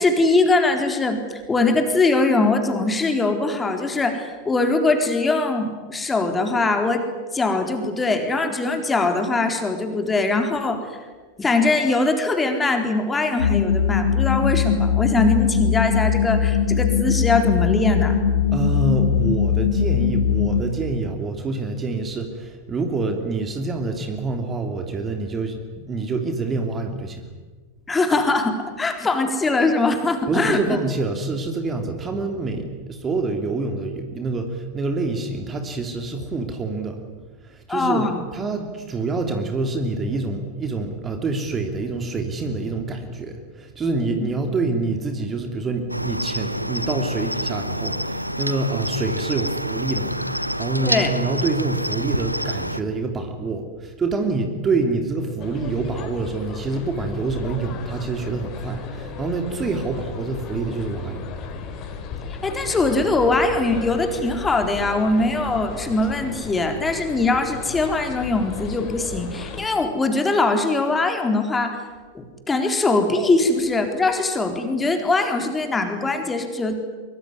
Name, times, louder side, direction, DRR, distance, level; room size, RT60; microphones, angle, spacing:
voice 1, 0.0-7.1 7.3-10.8 11.4-18.2 27.9-30.6 37.7-38.2 44.0-44.3 50.8-51.1 62.4-71.8 72.1-76.7, left 3 dB, 15° left, 5 dB, 3.9 m, -21 dB
sound 1, 13.4-20.6, left 7 dB, 75° left, 3.1 m, -20 dB
voice 2, 18.5-27.2 30.3-37.0 37.5-38.1 38.3-61.2, right 3 dB, 20° right, 5 dB, 3.2 m, -26 dB
Cricket, 45.9-52.8, equal, 90° right, 1.0 m, -27 dB
sound 2, 55.4-69.6, left 5 dB, 35° left, 4.5 m, -35 dB
23.5 x 23.5 x 9.9 m, 1.4 s
figure-of-eight pair, 90°, 0 cm